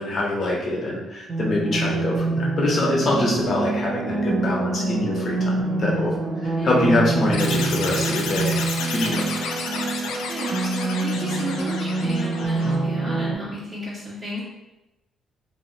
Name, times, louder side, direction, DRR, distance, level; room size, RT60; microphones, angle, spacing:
voice 1, 0.0-6.1 6.4-8.6 8.9-9.4, left 1 dB, 50° left, -2 dB, 0.9 m, -24 dB
sound 1, 1.3-13.3, right 3 dB, 60° right, 0.6 m, -26 dB
voice 2, 6.6-6.9 10.3-14.4, right 1 dB, 30° right, -10 dB, 1.2 m, -33 dB
sound 2, 7.3-12.8, left 4 dB, 90° left, 0.4 m, -31 dB
2.8 x 2.7 x 2.7 m, 0.98 s
cardioid pair, 90°, 0 cm